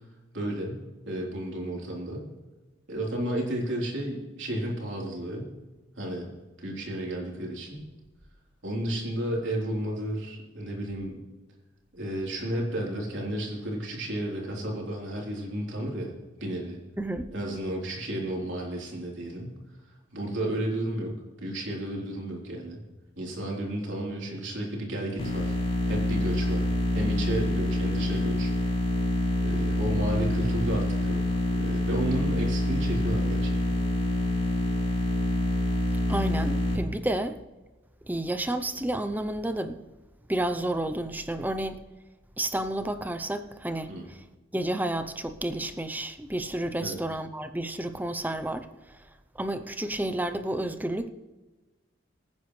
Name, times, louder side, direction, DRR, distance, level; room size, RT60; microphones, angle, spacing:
voice 1, 0.3-2.3 2.9-5.5 6.0-6.3 6.6-7.8 8.6-11.2 11.9-16.1 16.4-16.8 17.3-19.6 20.1-22.8 23.2-25.6 25.9-28.5 29.4-31.2 31.5-33.6 43.9-44.0 46.8-47.0, right 1 dB, 70° right, -2 dB, 3.7 m, -32 dB
voice 2, 17.0-17.3 36.1-37.4 38.1-39.8 40.3-41.8 42.4-44.2 44.5-49.1 49.3-51.1, right 1 dB, 10° right, 10 dB, 0.6 m, -31 dB
sound 1, 25.2-36.7, left 1 dB, 30° left, 3.5 m, -26 dB
23.0 x 9.6 x 3.2 m, 1.2 s
head